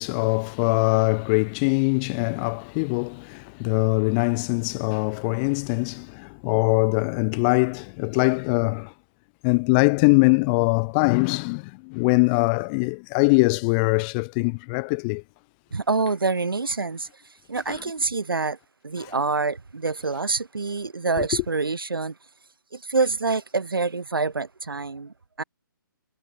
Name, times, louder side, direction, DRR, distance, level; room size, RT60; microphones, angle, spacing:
voice 1, 0.0-8.9 9.4-15.2 17.7-17.8 19.0-19.2 21.2-21.4, left 32 dB, 25° left, 0.9 m, -22 dB
voice 2, 15.7-17.1 17.5-18.6 18.8-22.1 22.7-25.4, right 4 dB, 85° right, 3.7 m, -26 dB
figure-of-eight pair, 145°, 11 cm